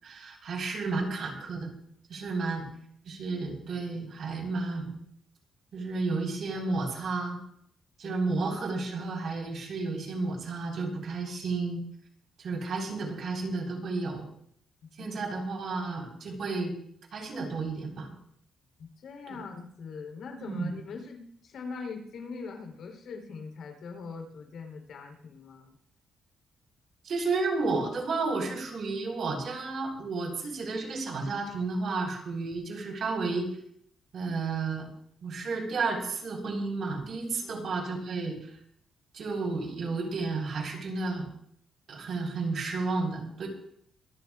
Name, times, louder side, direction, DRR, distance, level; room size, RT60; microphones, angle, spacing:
voice 1, 0.0-1.7 2.1-2.7 3.0-5.0 5.7-7.4 8.0-11.8 12.4-14.3 15.0-16.7 17.1-18.1 19.3-19.4 20.4-20.7 27.0-33.5 34.1-34.9 35.2-38.5 39.1-41.3 41.9-43.5, right 3 dB, 55° right, 0 dB, 4.3 m, -32 dB
voice 2, 8.0-8.5 15.0-15.1 18.8-25.7 37.4-37.7, left 4 dB, 65° left, 3 dB, 3.5 m, -42 dB
25.0 x 14.0 x 2.4 m, 0.69 s
cardioid pair, 160°, 0 cm